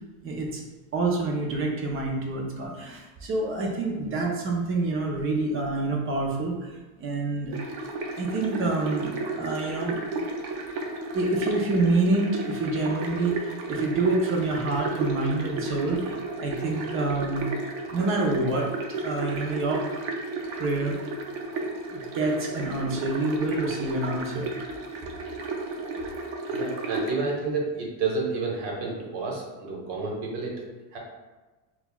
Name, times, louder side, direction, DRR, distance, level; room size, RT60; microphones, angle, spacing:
voice 1, 0.2-0.6 0.9-6.7 7.0-7.5 8.2-10.0 11.1-17.5 17.9-19.9 20.6-21.1 21.9-24.5, right 2 dB, 30° right, 0 dB, 0.4 m, -27 dB
sound 1, 7.5-27.1, right 2 dB, 75° right, 0.7 m, -33 dB
voice 2, 26.5-30.6 30.9-31.0, right 4 dB, 55° right, -2 dB, 1.1 m, -30 dB
5.3 x 2.3 x 2.2 m, 1.2 s
cardioid pair, 140°, 48 cm